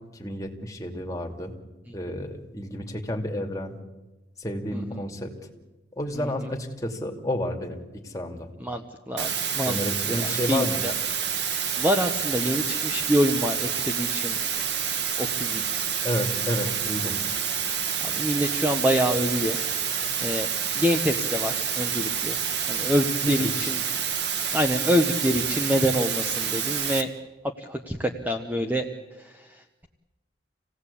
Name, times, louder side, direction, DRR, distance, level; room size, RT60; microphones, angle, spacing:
voice 1, 0.2-1.5 1.9-3.7 4.4-5.3 6.0-7.8 8.0-8.5 9.7-10.8 16.0-17.2 23.2-23.7, left 1 dB, 20° left, 3 dB, 2.6 m, -30 dB
voice 2, 4.7-5.0 6.1-6.5 8.6-9.8 10.0-10.9 11.8-14.4 15.2-15.9 18.0-19.6 20.2-22.4 22.7-23.8 24.5-27.1 27.6-28.8 29.2-29.9, equal, 10° right, 5 dB, 1.0 m, -26 dB
sound 1, 9.2-27.0, right 7 dB, 65° right, 1.6 m, -28 dB
27.5 x 17.5 x 8.5 m, 1.1 s
head